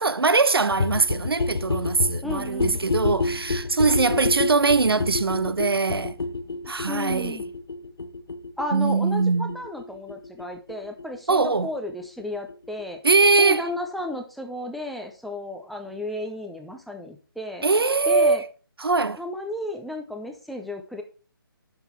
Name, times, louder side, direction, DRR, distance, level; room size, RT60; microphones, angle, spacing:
voice 1, 0.0-6.2 6.7-7.4 8.7-9.6 11.3-11.7 13.0-13.7 17.6-18.5 18.8-19.2, right 4 dB, 90° right, 0.6 m, -22 dB
sound 1, 0.7-12.2 12.5-12.6 12.8-12.9 13.1-13.2 13.4-13.5 13.7-13.8 14.0-14.1, left 3 dB, 80° left, 0.8 m, -29 dB
voice 2, 2.2-2.8 6.9-7.4 8.6-13.0 13.4-17.7 18.1-18.4 19.2-21.0, left 1 dB, ahead, 0.5 m, -33 dB
9.7 x 6.2 x 3.3 m
figure-of-eight pair, 150°, 12 cm